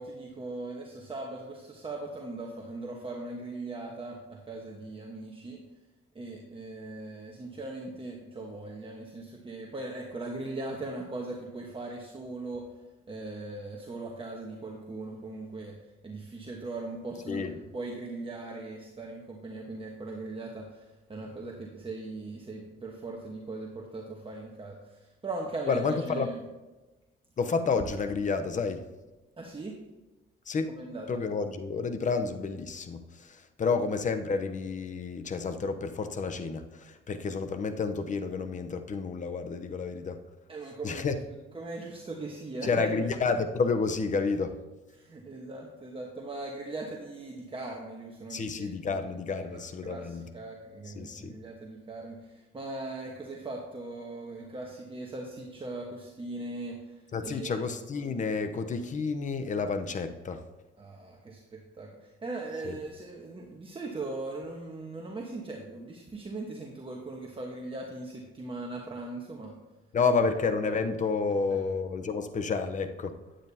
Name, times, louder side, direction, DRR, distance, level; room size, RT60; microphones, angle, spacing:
voice 1, 0.0-5.6 6.1-12.7 13.1-15.8 16.0-25.8 26.1-26.4 29.4-29.8 30.7-31.1 40.5-41.0 41.5-42.9 45.0-48.7 49.8-57.6 60.8-69.5 71.5-71.6, right 2 dB, 25° right, -1 dB, 1.2 m, -39 dB
voice 2, 17.3-17.6 25.7-26.3 27.4-28.8 30.5-30.7 31.1-40.2 40.8-41.2 42.6-44.6 48.3-50.3 50.8-51.4 57.1-60.4 62.7-62.8 69.9-73.2, left 4 dB, 40° left, 8 dB, 0.8 m, -30 dB
10.0 x 8.9 x 2.8 m, 1.1 s
cardioid pair, 90°, 20 cm